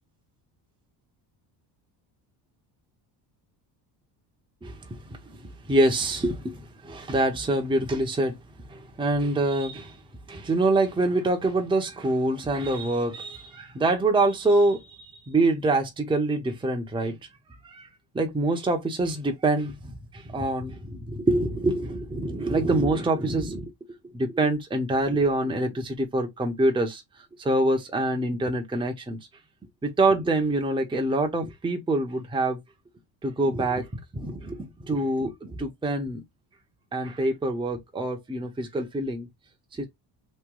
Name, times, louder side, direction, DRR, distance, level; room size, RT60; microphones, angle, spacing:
voice 1, 4.6-8.4 8.7-10.0 10.3-17.2 17.6-17.9 18.1-23.7 24.1-27.0 27.4-29.2 29.8-32.6 33.2-33.9 34.1-36.2 36.9-39.3 39.8-39.9, right 2 dB, 10° right, 0.8 m, -25 dB
3.1 x 2.2 x 3.6 m
cardioid pair, 100°, 47 cm